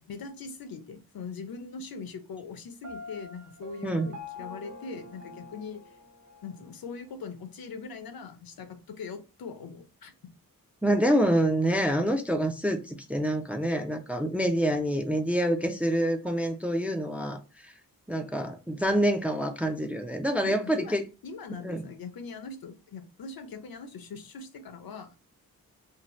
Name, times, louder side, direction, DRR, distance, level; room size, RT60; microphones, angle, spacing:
voice 1, 0.1-5.8 6.4-10.1 20.4-21.0 21.2-25.2, left 4 dB, 75° left, 0.6 m, -41 dB
Piano, 2.8-6.7, left 3 dB, 50° right, 0.7 m, -45 dB
voice 2, 10.8-17.7 18.1-21.0 21.6-21.8, right 1 dB, 5° right, 0.3 m, -27 dB
2.7 x 2.1 x 3.0 m
wide cardioid pair, 75°, 36 cm